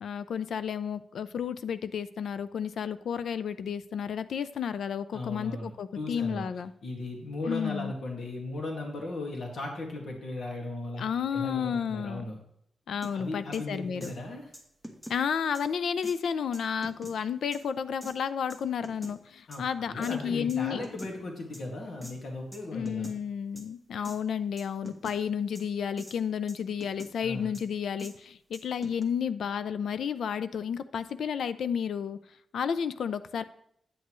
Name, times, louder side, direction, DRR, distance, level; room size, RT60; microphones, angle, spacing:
voice 1, 0.0-6.7 7.5-7.9 11.0-12.3 12.9-14.1 15.1-20.8 22.7-32.2 32.5-33.4, left 7 dB, 80° left, 13 dB, 0.4 m, -32 dB
voice 2, 5.1-5.7 6.0-6.4 6.8-11.0 11.3-12.4 13.1-14.5 19.5-23.1 27.2-27.6, left 2 dB, 60° left, 1 dB, 1.9 m, -37 dB
sound 1, 13.0-13.1 13.5-13.6 14.0-14.1 14.5-15.2 15.5-15.6 16.0-16.2 16.5-17.1 17.5-17.6 18.0-18.1 18.5-19.1 19.5-19.6 20.0-20.1 20.5-21.1 21.5-21.6 22.0-22.1 22.5-22.6 22.8-23.2 23.5-23.6 24.0-24.2 24.6-25.2 25.5-25.6 26.0-26.2 26.5-27.1 27.5-27.6 28.0-28.1 28.5-29.0, equal, 15° left, 1.0 m, -44 dB
9.2 x 8.1 x 3.1 m, 0.72 s
wide cardioid pair, 160°, 0 cm